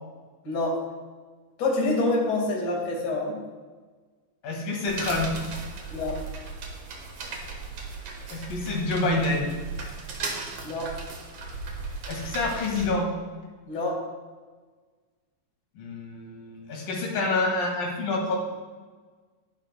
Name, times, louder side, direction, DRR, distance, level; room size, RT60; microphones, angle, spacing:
voice 1, 0.4-0.8 1.6-3.4 5.9-6.2 10.6-10.9 13.7-14.0, left 2 dB, 35° left, -2 dB, 2.0 m, -26 dB
voice 2, 4.4-5.3 5.8-6.0 8.3-9.5 12.1-13.1 15.8-18.5, left 2 dB, 80° left, -1 dB, 3.6 m, -27 dB
sound 1, 4.9-12.9, right 4 dB, 55° right, 1.8 m, -37 dB
11.5 x 10.5 x 2.2 m, 1.4 s
omnidirectional pair, 3.9 m